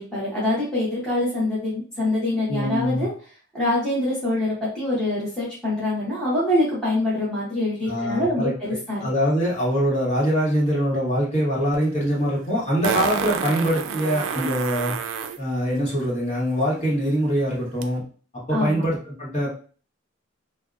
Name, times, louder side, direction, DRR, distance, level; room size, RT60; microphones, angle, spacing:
voice 1, 0.0-3.1 3.5-8.5 8.9-9.1 18.5-18.8, left 1 dB, 5° left, -9 dB, 0.8 m, -24 dB
voice 2, 2.5-3.1 7.9-15.0 15.4-18.0 18.3-19.5, equal, 35° left, -6 dB, 1.1 m, -23 dB
Fart, 11.7-11.8 12.8-15.4 17.8-17.9, right 7 dB, 80° right, 0.3 m, -28 dB
2.6 x 2.1 x 2.4 m, 0.41 s
head